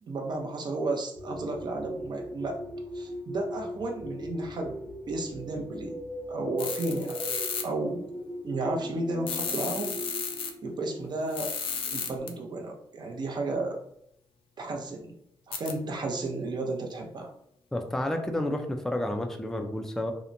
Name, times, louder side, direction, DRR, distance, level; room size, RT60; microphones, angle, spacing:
voice 1, 0.0-2.6 2.9-4.8 5.1-6.0 6.3-7.2 7.6-8.1 8.4-10.0 10.6-11.5 11.9-13.8 14.6-15.2 15.5-17.3, right 2 dB, 50° right, 2 dB, 0.6 m, -33 dB
sound 1, 1.2-12.2, equal, 15° right, 0.8 m, -39 dB
sound 2, 6.6-7.6 9.3-10.5 11.3-12.3 15.5-15.7, left 6 dB, 75° left, 0.4 m, -33 dB
voice 2, 17.7-20.1, left 1 dB, 5° left, 4 dB, 0.3 m, -30 dB
2.8 x 2.1 x 2.5 m, 0.72 s
cardioid pair, 90°, 9 cm